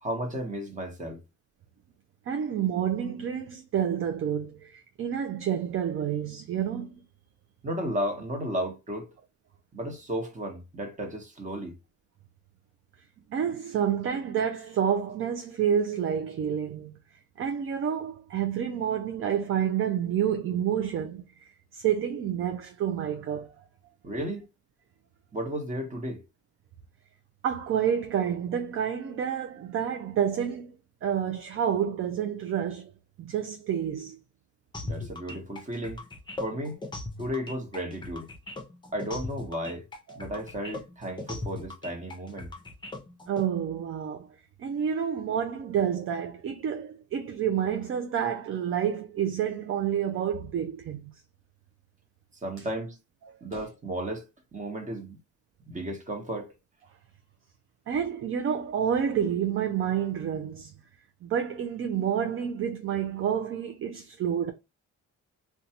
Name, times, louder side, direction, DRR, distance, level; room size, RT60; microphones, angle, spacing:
voice 1, 0.0-1.2 7.6-9.1 9.7-11.8 24.0-24.4 25.3-26.2 34.8-36.0 36.4-36.8 37.2-38.3 38.9-39.9 40.1-42.5 52.4-53.0 53.4-55.2 55.7-56.5, equal, 25° right, 1.0 m, -34 dB
voice 2, 2.3-6.9 13.3-17.0 17.4-21.2 21.7-23.5 27.4-30.7 31.0-32.9 33.2-34.2 40.1-40.2 43.3-44.3 44.6-51.1 52.6-52.7 53.3-53.4 57.9-60.7 61.2-64.5, right 8 dB, 45° right, 0.4 m, -29 dB
sound 1, 34.7-43.4, left 2 dB, 15° left, 0.6 m, -38 dB
2.5 x 2.3 x 2.8 m
cardioid pair, 90°, 30 cm